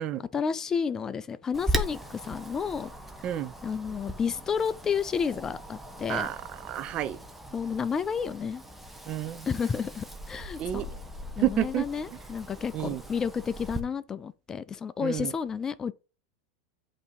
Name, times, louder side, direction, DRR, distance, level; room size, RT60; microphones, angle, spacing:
voice 1, 0.3-2.9 3.6-6.3 7.5-8.6 9.5-10.9 11.4-15.9, left 6 dB, 20° left, 0.3 m, -31 dB
Wind, 1.5-13.8, right 1 dB, 5° right, 1.0 m, -38 dB
voice 2, 6.6-7.2 9.1-9.5 10.6-10.9 11.4-11.8 12.7-13.0 15.0-15.3, right 13 dB, 40° right, 0.6 m, -29 dB
8.2 x 2.8 x 5.1 m
hypercardioid pair, 120°, 2 cm